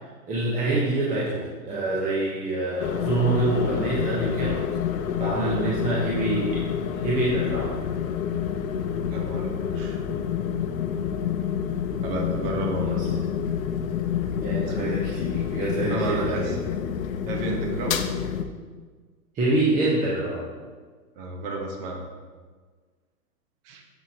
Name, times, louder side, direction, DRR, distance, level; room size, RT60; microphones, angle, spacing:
voice 1, 0.3-4.6 5.2-6.6 6.9-7.7 12.9-13.2 14.4-16.6 19.3-20.4, right 2 dB, 15° right, -6 dB, 0.9 m, -26 dB
sound 1, 2.8-18.4, left 8 dB, 60° left, 0.7 m, -28 dB
voice 2, 5.3-5.7 9.1-10.0 12.0-13.0 14.6-14.9 15.9-16.6 17.3-18.0 21.2-22.1 23.6-23.8, right 3 dB, 35° right, 2 dB, 1.1 m, -32 dB
7.2 x 7.2 x 2.8 m, 1.5 s
hypercardioid pair, 130°, 47 cm